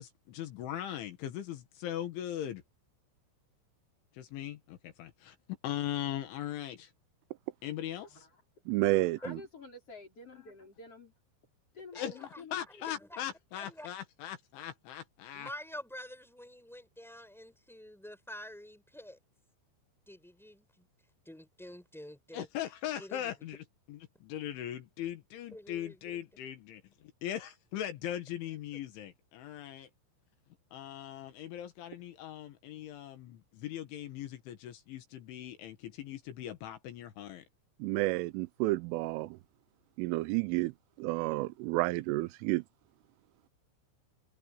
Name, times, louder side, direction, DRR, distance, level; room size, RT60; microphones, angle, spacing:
voice 1, 0.0-2.6 4.1-5.4 5.6-6.9 7.6-8.2 12.0-12.1 12.5-15.5 22.3-29.9 30.7-37.4, left 11 dB, 75° left, 4.1 m, -40 dB
voice 2, 8.0-8.4 9.0-11.1 11.7-12.6, left 3 dB, 30° left, 6.1 m, -50 dB
voice 3, 8.7-9.4 37.8-39.4 40.0-40.7 41.0-42.6, right 20 dB, 85° right, 3.2 m, -30 dB
voice 4, 11.9-12.4 12.7-13.2 13.5-13.9 15.3-19.2 20.1-20.9 21.2-22.5 23.0-23.3 25.5-26.0 28.5-28.6, left 1 dB, ahead, 6.4 m, -47 dB
omnidirectional pair, 5.6 m